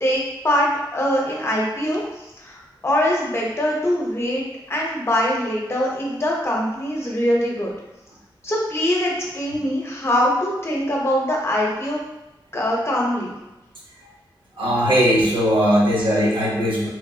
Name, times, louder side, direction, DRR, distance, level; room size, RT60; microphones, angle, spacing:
voice 1, 0.0-7.7 8.4-12.0 12.5-13.4, equal, 30° left, -3 dB, 0.6 m, -23 dB
voice 2, 14.6-16.9, equal, 75° right, -5 dB, 0.9 m, -19 dB
3.0 x 2.5 x 2.3 m, 0.97 s
wide cardioid pair, 95°, 8 cm